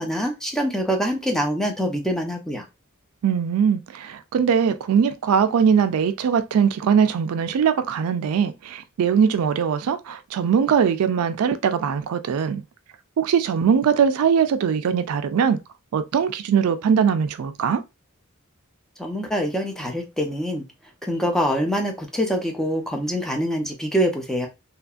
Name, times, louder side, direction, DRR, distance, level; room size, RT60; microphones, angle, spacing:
voice 1, 0.0-2.6 19.0-20.6 21.0-24.5, equal, ahead, 0.5 m, -25 dB
voice 2, 3.2-12.6 13.2-15.6 15.9-17.8, right 7 dB, 80° right, 0.3 m, -21 dB
2.8 x 2.5 x 2.3 m
head